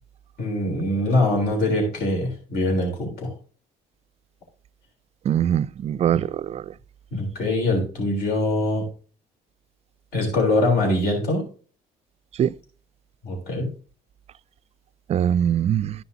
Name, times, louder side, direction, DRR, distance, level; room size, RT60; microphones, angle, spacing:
voice 1, 0.4-3.3 7.1-8.9 10.1-11.4 13.2-13.7, left 1 dB, 70° left, 3.6 m, -23 dB
voice 2, 5.3-6.6 12.4-12.5 15.1-15.9, right 9 dB, 40° right, 0.3 m, -22 dB
13.0 x 5.6 x 2.8 m
cardioid pair, 110°, 17 cm